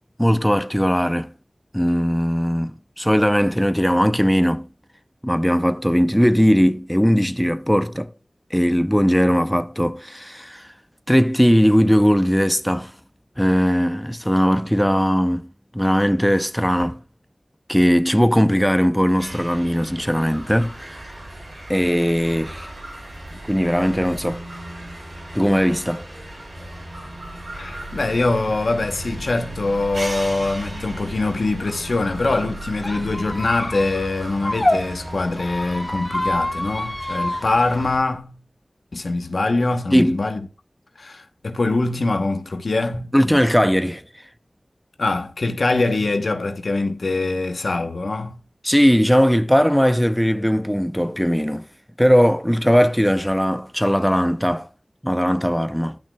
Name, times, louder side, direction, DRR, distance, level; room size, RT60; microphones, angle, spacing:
voice 1, 0.2-1.3 1.7-4.7 5.2-8.1 8.5-10.7 11.1-12.9 13.4-15.5 15.7-17.0 17.7-21.0 21.7-22.7 23.5-24.4 25.3-26.0 39.9-40.2 43.1-44.0 48.6-51.7 52.0-54.7 55.0-56.0, equal, 5° left, 0.5 m, -19 dB
sound 1, 19.2-38.0, right 1 dB, 75° right, 3.9 m, -36 dB
voice 2, 27.5-38.3 38.9-40.4 41.0-43.4 45.0-48.4, left 2 dB, 85° left, 0.9 m, -23 dB
Squeak, 32.8-34.8 35.3-37.4, left 1 dB, 30° left, 1.4 m, -26 dB
12.0 x 6.0 x 2.2 m
wide cardioid pair, 60°, 0 cm